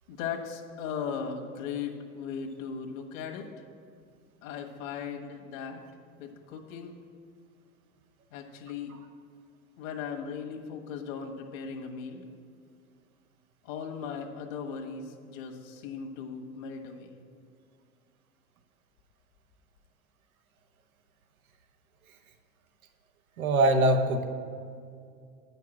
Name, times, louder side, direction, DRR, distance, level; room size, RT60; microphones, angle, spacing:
voice 1, 0.1-3.5 4.4-5.8 6.2-7.0 8.3-9.0 9.8-12.2 13.6-17.1, left 6 dB, 65° left, 3 dB, 1.4 m, -38 dB
voice 2, 23.4-24.2, right 1 dB, 85° right, 6 dB, 1.0 m, -22 dB
9.4 x 5.7 x 7.7 m, 2.3 s
hypercardioid pair, 95°, 41 cm